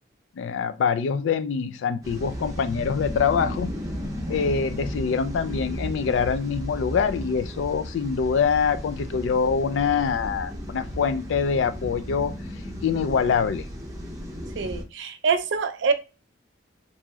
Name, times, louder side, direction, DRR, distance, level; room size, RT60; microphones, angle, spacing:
voice 1, 0.4-3.7 4.3-12.3 12.8-13.7, left 6 dB, 75° left, 0.3 m, -24 dB
sound 1, 2.0-14.8, equal, 20° right, 0.6 m, -34 dB
voice 2, 14.6-15.9, right 5 dB, 70° right, 0.4 m, -25 dB
3.0 x 2.7 x 2.3 m
head